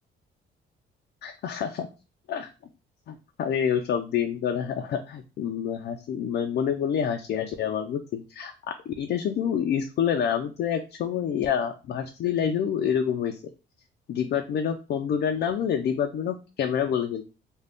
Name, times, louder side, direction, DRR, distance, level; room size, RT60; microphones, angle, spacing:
voice 1, 1.2-1.9 2.3-2.5 3.1-13.4 14.1-17.2, left 8 dB, 55° left, 5 dB, 0.4 m, -27 dB
2.5 x 2.2 x 3.4 m, 0.32 s
cardioid pair, 90°, 20 cm